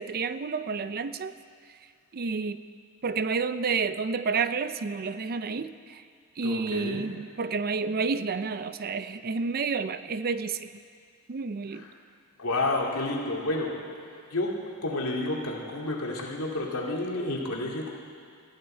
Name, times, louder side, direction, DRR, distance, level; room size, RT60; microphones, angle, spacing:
voice 1, 0.0-1.3 2.1-2.6 3.0-6.0 6.4-10.7 11.3-11.9, right 4 dB, 45° right, 13 dB, 0.5 m, -30 dB
voice 2, 6.4-7.0 12.4-17.9, left 2 dB, 80° left, -1 dB, 2.5 m, -30 dB
21.0 x 14.5 x 4.4 m, 2.1 s
head